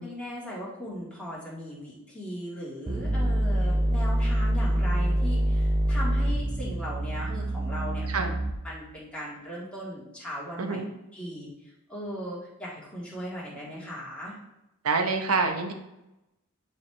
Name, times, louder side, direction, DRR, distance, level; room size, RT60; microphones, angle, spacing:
voice 1, 0.0-8.4 8.6-10.8 11.1-14.3, equal, 5° left, -7 dB, 1.8 m, -38 dB
sound 1, 2.9-8.8, equal, 25° right, 0.5 m, -26 dB
voice 2, 10.6-10.9 14.8-15.7, right 4 dB, 80° right, 5 dB, 0.8 m, -26 dB
9.5 x 3.5 x 3.2 m, 0.92 s
head